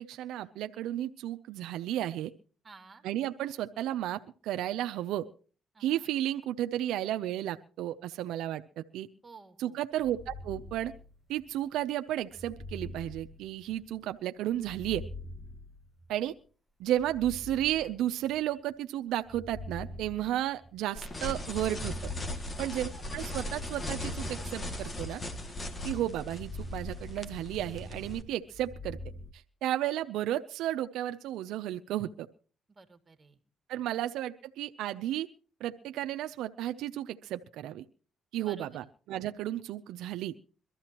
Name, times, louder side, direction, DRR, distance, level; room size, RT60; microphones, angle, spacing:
voice 1, 0.0-2.3 3.0-5.2 5.8-9.1 9.6-10.9 11.3-15.0 16.1-16.3 16.8-22.1 22.6-25.2 25.8-29.0 29.3-32.3 33.7-35.3 35.6-37.8 38.3-40.3, right 12 dB, 90° right, 9 dB, 0.6 m, -33 dB
voice 2, 2.6-3.0 5.7-6.1 9.2-9.8 22.6-23.0 32.7-33.4 38.4-38.9, right 3 dB, 25° right, 6 dB, 2.3 m, -53 dB
sound 1, 10.0-11.5 12.3-14.0 14.5-16.3 16.9-18.5 19.2-21.0 21.5-23.1 23.9-25.6 26.1-27.9 28.4-29.3, left 2 dB, ahead, 1.0 m, -45 dB
sound 2, 21.0-28.2, left 1 dB, 30° left, 2.1 m, -38 dB
23.5 x 13.5 x 2.9 m, 0.39 s
cardioid pair, 90°, 0 cm